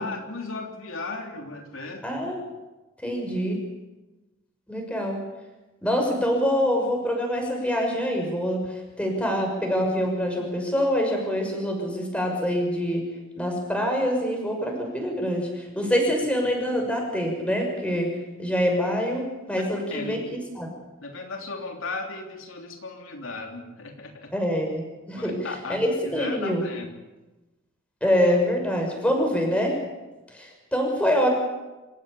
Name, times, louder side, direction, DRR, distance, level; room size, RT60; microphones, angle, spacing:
voice 1, 0.0-2.2 9.2-9.3 19.5-19.6 19.9-20.2 21.0-24.3 25.1-26.9, left 3 dB, 90° left, 2 dB, 3.3 m, -36 dB
voice 2, 2.0-2.4 3.0-3.6 4.7-5.2 5.8-13.1 13.4-20.7 24.3-25.4 25.7-26.7 28.0-29.8 30.3-31.3, equal, 5° left, 1 dB, 6.2 m, -25 dB
27.0 x 15.5 x 8.5 m, 1.1 s
head